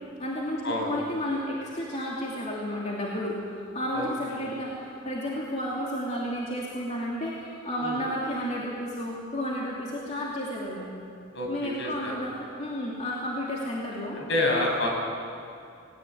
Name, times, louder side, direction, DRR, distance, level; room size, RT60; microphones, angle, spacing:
voice 1, 0.2-10.9 11.5-14.2, equal, 35° left, -4 dB, 2.9 m, -32 dB
voice 2, 3.9-4.4 7.8-8.0 11.3-12.1 14.1-14.9, left 1 dB, 65° left, 0 dB, 6.3 m, -28 dB
19.5 x 19.0 x 9.1 m, 2.4 s
head